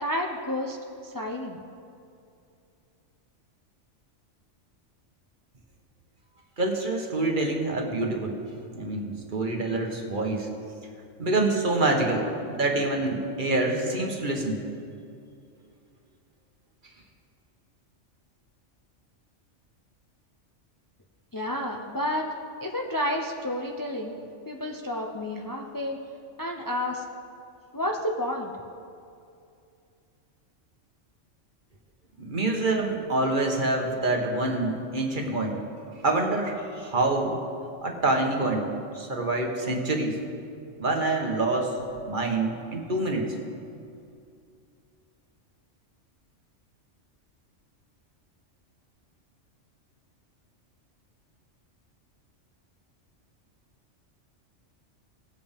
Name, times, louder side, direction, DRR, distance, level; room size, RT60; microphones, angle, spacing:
voice 1, 0.0-0.8 1.0-1.6 21.3-22.3 22.6-24.2 24.5-26.0 26.4-27.0 27.7-28.5, left 1 dB, 25° left, 0 dB, 0.5 m, -30 dB
voice 2, 6.6-8.4 8.7-10.5 11.2-14.6 32.2-35.6 36.0-37.3 37.8-40.2 40.8-41.7 42.0-43.2, right 2 dB, 45° right, 2 dB, 1.3 m, -26 dB
19.0 x 7.7 x 3.6 m, 2.5 s
omnidirectional pair, 1.3 m